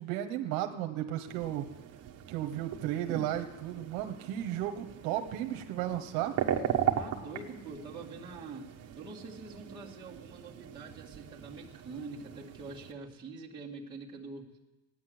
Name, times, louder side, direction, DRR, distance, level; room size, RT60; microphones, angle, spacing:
voice 1, 0.0-1.6 2.3-6.3, right 12 dB, 70° right, 5 dB, 1.3 m, -34 dB
sound 1, 1.3-12.9, right 10 dB, 40° right, 1.4 m, -38 dB
voice 2, 6.9-8.7 9.0-14.6, right 3 dB, 10° right, -6 dB, 2.1 m, -45 dB
17.0 x 10.0 x 7.9 m, 1.1 s
cardioid pair, 170°, 37 cm